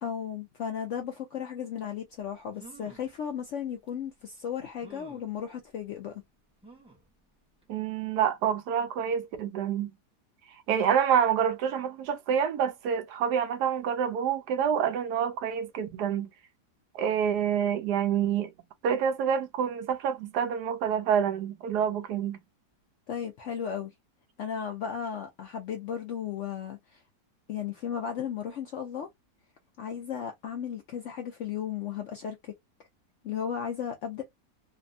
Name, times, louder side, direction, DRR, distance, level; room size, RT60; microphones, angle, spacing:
voice 1, 0.0-6.2 23.1-23.9 24.4-27.0 27.5-29.1 29.8-32.5 33.2-34.2, left 8 dB, 70° left, 0.7 m, -35 dB
sound 1, 2.1-2.2 2.5-3.1 3.9-4.0 4.8-5.3 6.6-7.1 7.6-7.7 8.0-8.1, right 2 dB, 10° right, 0.3 m, -51 dB
voice 2, 7.7-9.9 10.7-16.3 16.9-18.5 18.8-22.4, right 8 dB, 75° right, 1.2 m, -27 dB
3.4 x 2.0 x 2.5 m
omnidirectional pair, 1.8 m